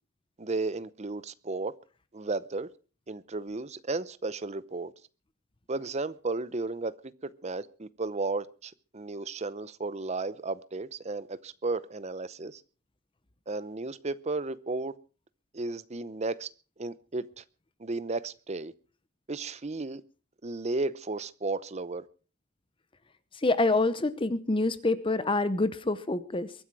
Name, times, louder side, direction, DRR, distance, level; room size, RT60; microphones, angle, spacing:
voice 1, 0.4-1.7 2.1-2.7 3.1-4.9 5.7-6.9 7.2-12.6 13.5-15.0 15.5-16.5 16.8-17.4 17.8-18.7 19.3-20.0 20.4-22.0, right 3 dB, 30° right, 0.7 m, -34 dB
voice 2, 23.3-26.5, left 2 dB, 25° left, 0.8 m, -26 dB
23.0 x 9.9 x 4.7 m
head